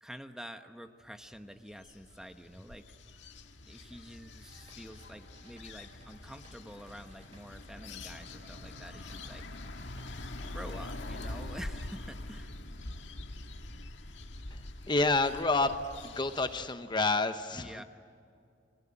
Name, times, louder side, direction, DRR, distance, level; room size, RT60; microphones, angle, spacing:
voice 1, 0.0-2.9 3.6-9.5 10.4-12.5 17.5-17.8, equal, 5° right, 7 dB, 1.0 m, -48 dB
sound 1, 1.5-16.7, left 2 dB, 85° left, 1.7 m, -44 dB
sound 2, 4.4-10.8, right 1 dB, 30° right, 5.5 m, -60 dB
voice 2, 14.9-17.8, left 3 dB, 25° left, 9 dB, 0.9 m, -29 dB
29.5 x 22.0 x 8.8 m, 2.4 s
head